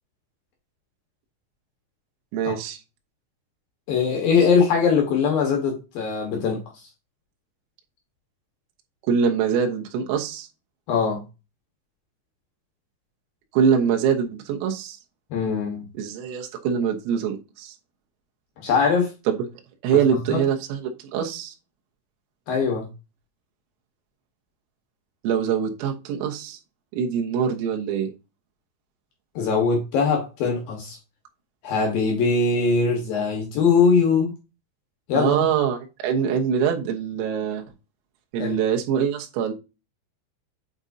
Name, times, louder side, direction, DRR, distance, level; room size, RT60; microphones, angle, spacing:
voice 1, 2.3-2.8 9.1-10.5 13.5-15.0 16.0-17.8 19.3-19.4 19.8-21.5 25.2-26.6 26.9-28.1 35.1-37.7 38.3-39.5, right 7 dB, 85° right, 3.9 m, -24 dB
voice 2, 3.9-6.6 10.9-11.2 15.3-15.9 18.6-19.1 20.3-20.4 22.5-22.9 29.4-31.0 31.6-34.3 35.1-35.5 38.4-38.6, left 5 dB, 65° left, 2.4 m, -21 dB
8.8 x 5.0 x 2.7 m
omnidirectional pair, 5.9 m